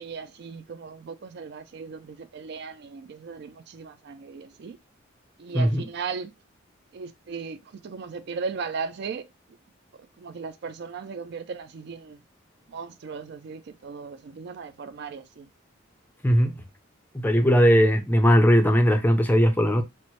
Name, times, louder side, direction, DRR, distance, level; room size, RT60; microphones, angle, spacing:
voice 1, 0.0-4.8 5.4-6.3 6.9-9.3 10.2-12.2 12.7-15.5, right 5 dB, 55° right, 0.4 m, -37 dB
voice 2, 5.5-5.9 16.2-16.6 17.1-19.8, equal, 10° left, 0.4 m, -19 dB
4.4 x 2.1 x 3.0 m
head